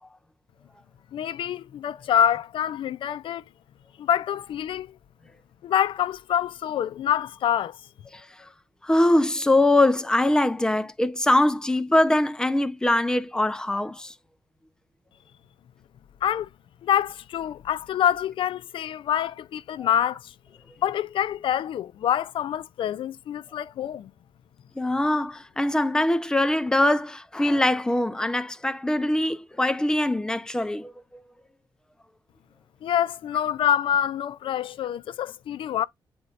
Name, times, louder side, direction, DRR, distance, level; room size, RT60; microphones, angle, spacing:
voice 1, 1.1-3.4 4.0-4.9 5.6-7.8 16.2-16.5 16.8-20.3 20.8-24.1 32.8-35.9, left 10 dB, 75° left, 0.4 m, -26 dB
voice 2, 8.8-14.1 19.8-19.9 24.8-30.9, left 1 dB, 10° left, 0.7 m, -22 dB
9.4 x 4.2 x 2.5 m
wide cardioid pair, 145°, 9 cm